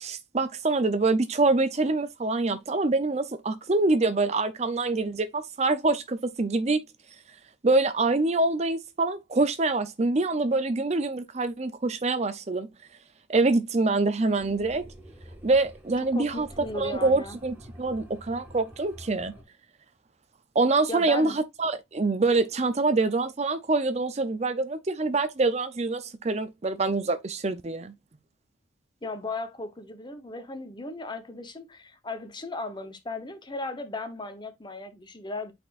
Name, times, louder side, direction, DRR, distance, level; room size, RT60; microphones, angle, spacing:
voice 1, 0.0-6.8 7.6-12.7 13.3-14.8 15.4-19.3 20.5-27.9, right 3 dB, 35° right, 0.6 m, -25 dB
sound 1, 14.4-19.4, equal, 10° right, 1.8 m, -47 dB
voice 2, 16.1-17.4 20.9-21.4 29.0-35.5, left 2 dB, 25° left, 1.0 m, -36 dB
8.8 x 4.3 x 2.5 m
head